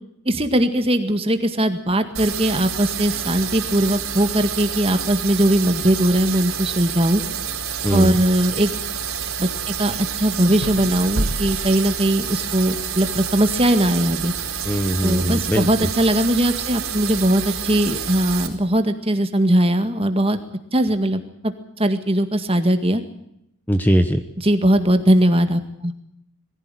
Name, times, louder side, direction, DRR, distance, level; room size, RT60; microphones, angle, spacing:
voice 1, 0.3-7.2 7.9-8.7 9.4-14.3 15.0-20.4 20.7-23.0 24.4-25.9, right 1 dB, 25° right, 8 dB, 1.9 m, -20 dB
sound 1, 2.1-18.5, right 8 dB, 65° right, 4.6 m, -28 dB
voice 2, 7.8-8.2 14.6-15.9 23.7-24.2, equal, 10° left, 8 dB, 1.1 m, -20 dB
sound 2, 10.5-12.7, right 1 dB, 85° right, 1.9 m, -29 dB
21.5 x 15.5 x 9.2 m, 0.77 s
head